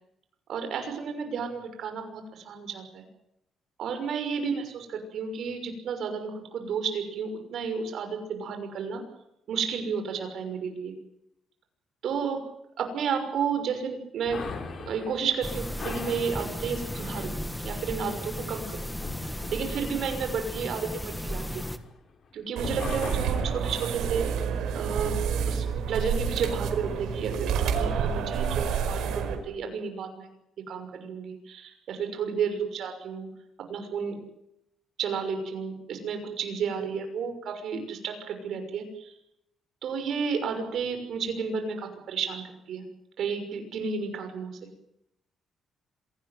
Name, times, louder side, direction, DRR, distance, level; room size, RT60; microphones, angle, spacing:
voice 1, 0.5-3.0 3.8-9.0 9.5-10.9 12.0-12.4 12.8-14.4 14.8-18.9 19.5-21.6 22.3-24.3 24.7-25.2 25.5-30.3 30.7-33.3 33.7-34.2 35.0-39.1 39.8-42.8 43.2-44.5, right 6 dB, 60° right, 6 dB, 6.3 m, -32 dB
sound 1, 14.3-22.3 22.6-24.9, left 4 dB, 40° left, 3.9 m, -41 dB
sound 2, 15.4-21.8, equal, 5° left, 1.6 m, -35 dB
sound 3, 22.6-29.4, right 7 dB, 90° right, 4.8 m, -29 dB
26.5 x 18.5 x 9.4 m, 0.82 s
cardioid pair, 160°, 0 cm